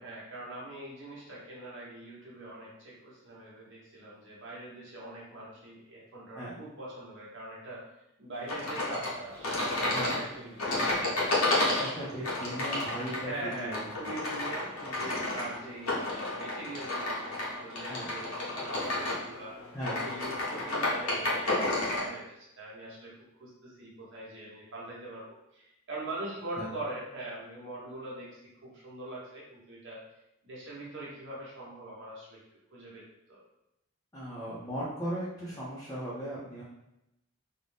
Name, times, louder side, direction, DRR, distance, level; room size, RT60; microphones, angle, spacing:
voice 1, 0.0-7.8 8.2-11.4 13.2-19.5 19.9-23.1 23.4-30.0 30.4-32.4 32.7-33.4, right 2 dB, 60° right, -5 dB, 1.0 m, -42 dB
sound 1, 8.5-22.1, left 2 dB, 85° left, 0.9 m, -31 dB
voice 2, 11.8-14.0 17.9-18.1 19.7-20.0 26.6-26.7 34.1-36.6, right 1 dB, 15° left, -9 dB, 0.5 m, -37 dB
2.6 x 2.1 x 3.3 m, 0.86 s
head